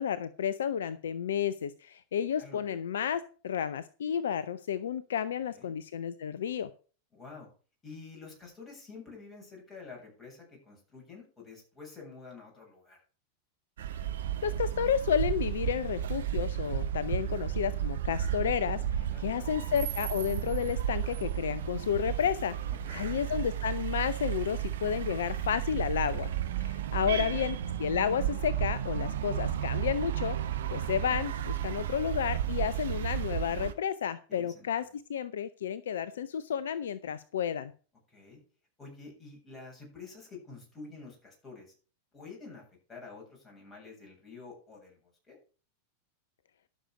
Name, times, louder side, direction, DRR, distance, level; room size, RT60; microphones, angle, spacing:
voice 1, 0.0-6.7 14.4-22.5 22.9-26.3 26.6-30.4 30.7-34.8 35.1-37.7, left 8 dB, 60° left, 15 dB, 0.6 m, -31 dB
voice 2, 2.4-2.8 5.5-5.7 7.1-7.5 7.8-13.0 19.1-19.6 22.8-23.2 27.1-27.5 32.5-32.8 34.3-34.7 38.1-38.4 38.8-41.7 42.1-42.6 42.9-45.4, left 4 dB, 15° left, -1 dB, 7.9 m, -49 dB
sound 1, 13.8-33.7, right 10 dB, 60° right, 1.1 m, -33 dB
12.5 x 6.6 x 6.0 m, 0.38 s
figure-of-eight pair, 90°, 0 cm